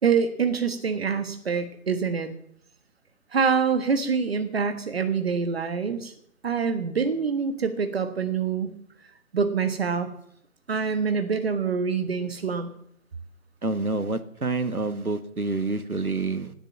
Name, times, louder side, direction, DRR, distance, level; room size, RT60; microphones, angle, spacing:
voice 1, 0.0-2.3 3.3-6.1 6.4-8.8 9.3-10.1 10.7-12.7, right 6 dB, 45° right, 8 dB, 1.4 m, -25 dB
voice 2, 13.6-16.5, right 3 dB, 85° right, 11 dB, 1.6 m, -28 dB
17.5 x 8.1 x 7.3 m, 0.67 s
figure-of-eight pair, 140°, 43 cm